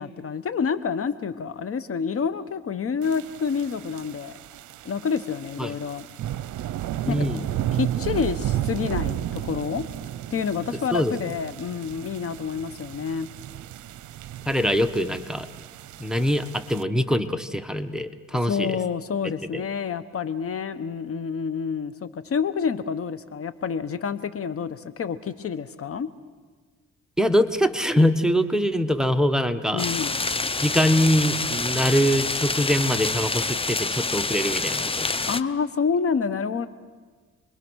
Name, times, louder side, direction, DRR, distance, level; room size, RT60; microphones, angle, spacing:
voice 1, 0.0-4.4 4.8-6.1 7.1-7.3 7.7-9.8 10.3-13.3 18.4-26.1 29.7-30.2 35.2-36.7, left 6 dB, 50° left, 13 dB, 1.1 m, -28 dB
sound 1, 3.0-16.8, right 12 dB, 75° right, 0.7 m, -33 dB
voice 2, 7.0-7.4 10.9-11.1 14.5-15.5 16.0-18.8 19.5-19.6 27.2-29.8 30.6-35.1, equal, ahead, 9 dB, 1.2 m, -23 dB
sound 2, 29.8-35.4, left 3 dB, 20° left, 0.8 m, -27 dB
29.0 x 22.0 x 6.4 m, 1.5 s
cardioid pair, 90°, 30 cm